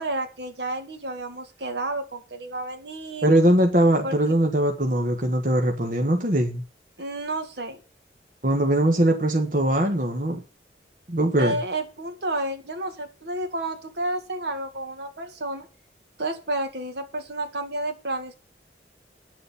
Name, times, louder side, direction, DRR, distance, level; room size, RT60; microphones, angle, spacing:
voice 1, 0.0-3.3 4.0-4.2 7.0-7.8 11.4-15.7 16.2-18.3, right 2 dB, 70° right, 7 dB, 2.0 m, -31 dB
voice 2, 3.2-6.6 8.4-10.4 11.1-11.6, right 1 dB, 50° right, 4 dB, 1.5 m, -21 dB
10.0 x 7.1 x 7.0 m, 0.34 s
head